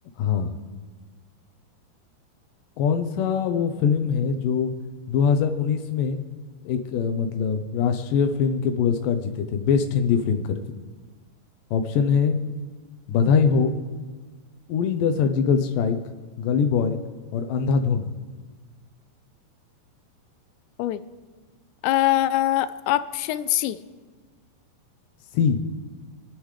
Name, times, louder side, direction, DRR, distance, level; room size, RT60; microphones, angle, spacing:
voice 1, 0.2-0.6 2.8-4.7 5.1-6.2 6.6-10.6 11.7-12.4 13.1-13.7 14.7-16.0 16.4-17.0 17.3-18.1 25.3-25.6, left 6 dB, 70° left, 6 dB, 2.1 m, -22 dB
voice 2, 21.8-23.8, left 14 dB, 90° left, 13 dB, 2.8 m, -23 dB
29.5 x 10.0 x 3.3 m, 1.4 s
omnidirectional pair, 4.9 m